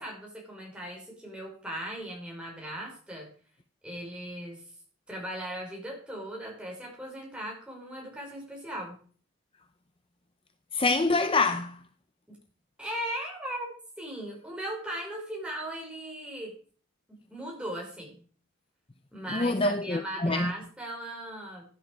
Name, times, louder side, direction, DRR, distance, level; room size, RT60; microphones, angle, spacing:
voice 1, 0.0-3.3 3.8-4.7 5.1-9.0 12.3-12.4 12.8-16.5 17.1-18.2 19.1-21.7, right 1 dB, 5° right, 5.2 m, -38 dB
voice 2, 10.7-11.8 19.3-20.5, left 2 dB, 25° left, 0.6 m, -26 dB
16.0 x 9.9 x 4.8 m
head